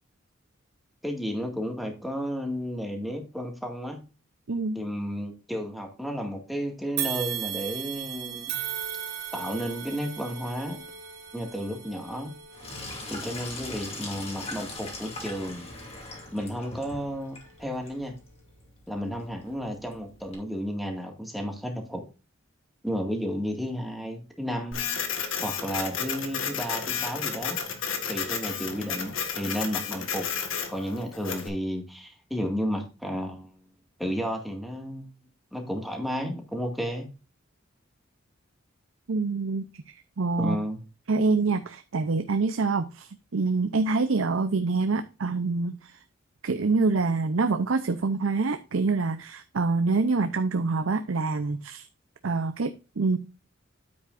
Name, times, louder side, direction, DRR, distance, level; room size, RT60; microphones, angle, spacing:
voice 1, 1.0-4.1 4.7-8.5 9.3-10.8 11.3-12.4 13.1-15.7 16.3-18.2 18.9-22.0 22.8-24.8 25.4-27.6 28.1-30.3 30.7-33.6 34.0-35.1 35.5-37.1 40.4-40.8, equal, ahead, 1.9 m, -32 dB
sound 1, 7.0-16.3 16.8-17.0 17.9-18.0, right 9 dB, 55° right, 1.7 m, -37 dB
Sink (filling or washing), 12.5-20.4, left 2 dB, 30° left, 2.6 m, -41 dB
Printer, 24.7-31.5, left 7 dB, 85° left, 1.6 m, -32 dB
voice 2, 39.1-39.7 40.2-40.6 41.1-45.7 46.4-51.8 52.2-53.2, right 3 dB, 90° right, 0.6 m, -26 dB
9.4 x 8.1 x 2.5 m
head